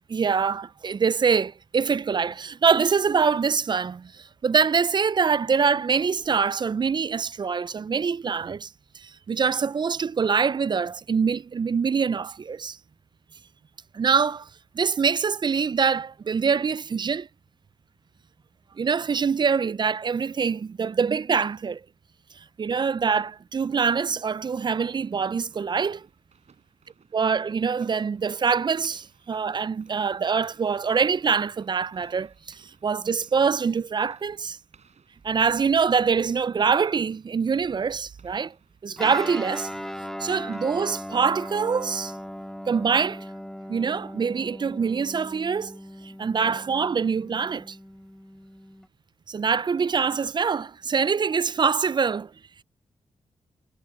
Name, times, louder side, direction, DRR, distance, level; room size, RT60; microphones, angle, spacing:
voice 1, 0.1-8.7 8.9-12.8 13.9-14.5 14.7-17.3 18.8-21.8 22.6-26.1 27.1-34.6 35.2-38.5 38.8-39.7 40.2-42.1 42.7-43.3 43.7-45.8 46.0-47.8 49.3-52.3, right 6 dB, 35° right, 0.3 m, -24 dB
sound 1, 24.9-41.7, right 6 dB, 60° right, 7.1 m, -60 dB
Guitar, 39.0-48.9, equal, 5° left, 2.7 m, -38 dB
cardioid pair, 60°, 13 cm